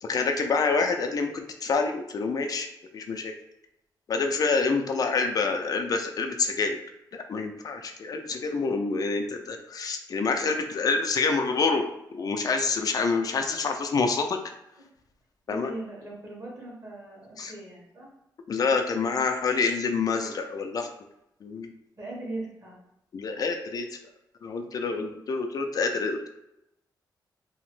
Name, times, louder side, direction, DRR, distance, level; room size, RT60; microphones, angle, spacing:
voice 1, 0.0-2.7 2.9-3.3 4.1-6.8 7.1-11.8 12.1-14.4 15.5-15.7 17.4-17.5 18.5-20.9 21.4-21.7 23.1-24.0 24.4-26.3, left 4 dB, 50° left, 4 dB, 0.4 m, -27 dB
voice 2, 15.5-18.1 20.1-20.4 21.9-22.8 24.9-25.1, right 2 dB, 40° right, -4 dB, 1.4 m, -40 dB
2.9 x 2.0 x 3.1 m, 0.84 s
cardioid pair, 90°, 8 cm